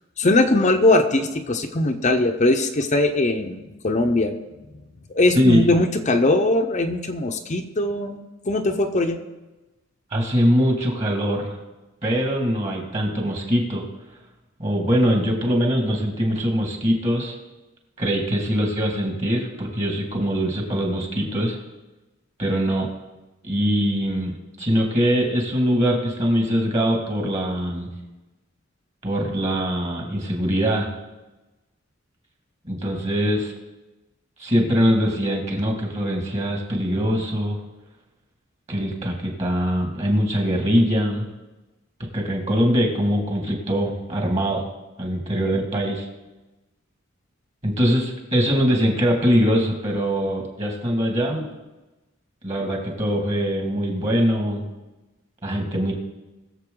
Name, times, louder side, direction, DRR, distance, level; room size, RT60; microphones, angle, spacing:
voice 1, 0.2-4.4 5.1-9.2, left 2 dB, 35° left, 5 dB, 0.8 m, -20 dB
voice 2, 5.4-5.7 10.1-11.6 12.0-13.8 14.6-17.4 18.0-21.6 22.4-22.9 23.4-27.9 29.0-30.9 32.6-33.5 34.4-37.6 38.7-41.3 42.1-44.6 45.0-46.1 47.6-51.5 52.4-54.6 55.4-55.9, equal, 30° right, 1 dB, 2.0 m, -22 dB
21.0 x 7.2 x 3.8 m, 1.1 s
head